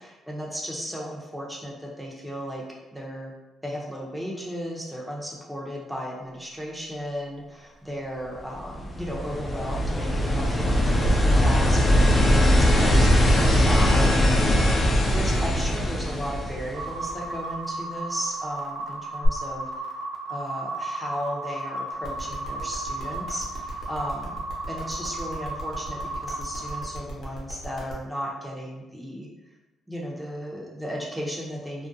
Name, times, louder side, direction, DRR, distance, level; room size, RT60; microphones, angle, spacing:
voice 1, 0.0-2.6 2.9-3.4 3.6-19.7 20.3-24.4 24.7-29.3 29.9-31.9, equal, 5° right, -3 dB, 0.6 m, -35 dB
sound 1, 8.6-17.1 19.2-19.3, equal, 35° left, 0.4 m, -20 dB
sound 2, 16.7-26.8, right 2 dB, 65° right, 0.5 m, -34 dB
sound 3, 22.0-27.9, equal, 60° left, 0.8 m, -40 dB
2.4 x 2.1 x 2.6 m, 1.1 s
cardioid pair, 90°, 0 cm